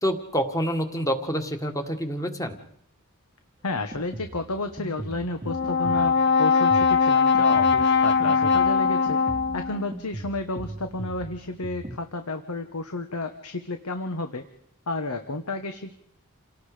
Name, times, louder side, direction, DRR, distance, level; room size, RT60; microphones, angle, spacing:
voice 1, 0.0-2.6, equal, 15° left, 6 dB, 1.9 m, -27 dB
voice 2, 3.6-9.2 9.5-14.5 14.9-15.9, left 2 dB, 80° left, 7 dB, 1.3 m, -31 dB
Drum kit, 3.7-12.0, right 1 dB, 25° right, 1.0 m, -39 dB
Brass instrument, 5.5-9.9, left 5 dB, 50° left, 1.0 m, -21 dB
28.5 x 18.5 x 5.1 m, 0.69 s
head